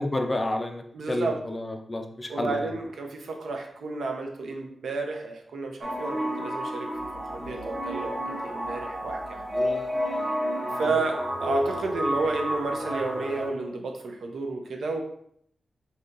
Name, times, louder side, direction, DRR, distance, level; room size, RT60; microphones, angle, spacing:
voice 1, 0.0-2.7, left 1 dB, 20° left, 4 dB, 0.4 m, -30 dB
voice 2, 0.9-1.4 2.3-6.9 7.2-9.8 10.7-15.0, right 3 dB, 70° right, 2 dB, 0.7 m, -31 dB
sound 1, 5.8-13.5, equal, 25° right, 0.8 m, -30 dB
3.9 x 2.8 x 3.8 m, 0.68 s
wide cardioid pair, 160°, 0 cm